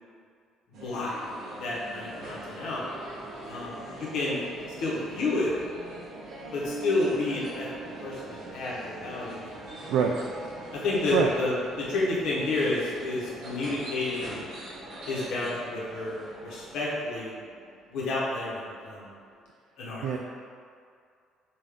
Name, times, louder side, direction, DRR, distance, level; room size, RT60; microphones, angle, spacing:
sound 1, 0.7-16.7, right 1 dB, 60° right, 1.0 m, -44 dB
voice 1, 0.8-1.1 1.6-2.8 3.5-4.4 4.8-5.5 6.5-9.7 10.7-14.3 15.1-17.3 17.9-19.1 19.8-20.1, left 2 dB, 65° left, -6 dB, 1.0 m, -30 dB
sound 2, 1.2-19.5, right 2 dB, 35° right, 0.7 m, -46 dB
Bass guitar, 6.6-9.1, right 4 dB, 15° left, 0.9 m, -43 dB
voice 2, 9.9-10.1 11.1-11.3 20.0-20.2, right 7 dB, 85° right, 1 dB, 0.3 m, -24 dB
5.4 x 2.5 x 3.5 m, 2.3 s
cardioid pair, 150°, 0 cm